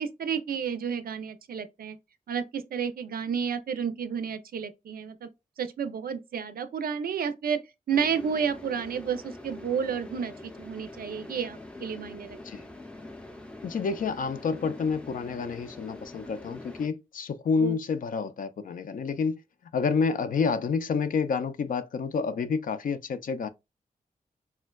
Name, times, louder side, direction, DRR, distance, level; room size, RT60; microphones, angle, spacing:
voice 1, 0.0-2.0 2.3-5.3 5.6-7.6 7.9-12.4 17.6-17.7, right 7 dB, 70° right, 0.4 m, -31 dB
sound 1, 7.9-16.9, left 2 dB, 5° left, 0.5 m, -44 dB
voice 2, 13.6-19.4 19.7-23.5, left 5 dB, 60° left, 0.4 m, -29 dB
4.2 x 2.1 x 2.2 m
wide cardioid pair, 85°, 16 cm